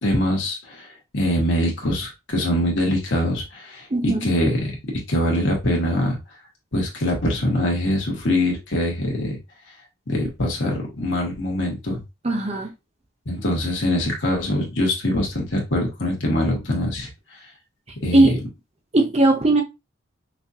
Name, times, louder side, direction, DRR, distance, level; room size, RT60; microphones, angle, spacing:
voice 1, 0.0-4.7 5.1-6.2 6.7-9.4 10.1-12.0 13.2-17.4 18.0-18.3, left 1 dB, 65° left, 1.6 m, -23 dB
voice 2, 3.9-4.3 12.2-12.7 18.1-18.4 18.9-19.6, right 2 dB, 30° right, 0.7 m, -18 dB
5.8 x 2.5 x 2.8 m
head